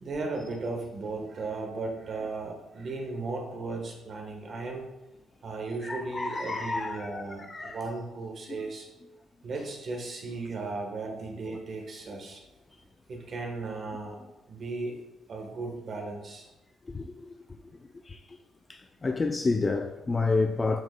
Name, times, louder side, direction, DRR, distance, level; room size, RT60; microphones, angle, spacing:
voice 1, 0.0-4.9 5.4-8.9 9.4-12.4 13.1-14.2 14.5-15.0 15.3-16.5, right 3 dB, 50° right, 1.2 m, -36 dB
voice 2, 5.8-7.2 7.5-7.8 16.9-17.3 18.1-18.4 18.7-20.8, left 3 dB, 30° left, 0.4 m, -29 dB
12.5 x 4.9 x 2.2 m
cardioid pair, 90°, 0 cm